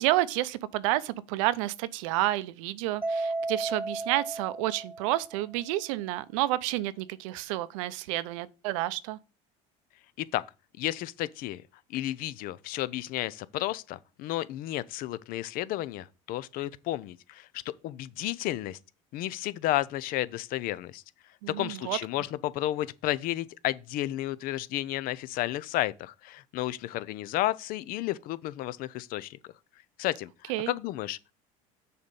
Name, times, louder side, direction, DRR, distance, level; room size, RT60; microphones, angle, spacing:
voice 1, 0.0-9.2 21.4-22.0 30.5-30.7, right 16 dB, 85° right, 0.6 m, -30 dB
Mallet percussion, 3.0-5.5, right 2 dB, 10° right, 0.3 m, -34 dB
voice 2, 10.8-11.6 11.9-18.8 19.1-21.0 21.5-29.5 30.0-31.3, left 15 dB, 60° left, 0.5 m, -32 dB
6.7 x 4.3 x 5.2 m
supercardioid pair, 100°, 17 cm